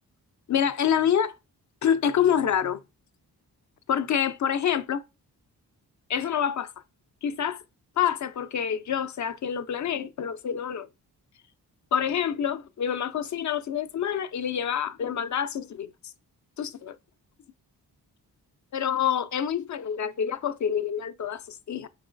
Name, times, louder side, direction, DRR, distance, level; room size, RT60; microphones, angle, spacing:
voice 1, 0.5-1.3 1.8-2.8 3.9-5.0 6.1-6.7 7.2-7.6 8.0-10.9 11.9-15.9 16.6-17.0 18.7-21.9, left 8 dB, 45° left, 0.4 m, -27 dB
4.6 x 3.0 x 2.5 m
supercardioid pair, 45°, 41 cm